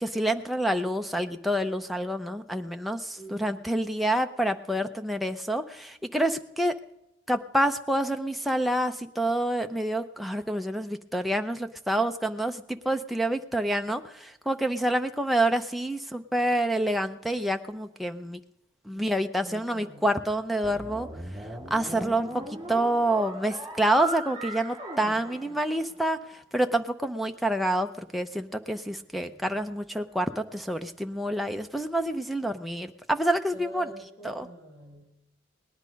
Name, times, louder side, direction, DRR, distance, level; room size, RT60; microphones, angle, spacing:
voice 1, 0.0-6.7 7.3-18.4 18.9-21.1 21.7-26.2 26.5-33.9 34.2-34.5, right 1 dB, ahead, 5 dB, 0.5 m, -27 dB
voice 2, 3.2-3.6 18.9-19.0 19.4-20.0 21.9-22.3 33.5-35.1, right 1 dB, 20° left, -2 dB, 4.7 m, -45 dB
sound 1, 20.6-26.1, right 1 dB, 25° right, 2.9 m, -38 dB
18.5 x 10.5 x 5.2 m, 0.89 s
head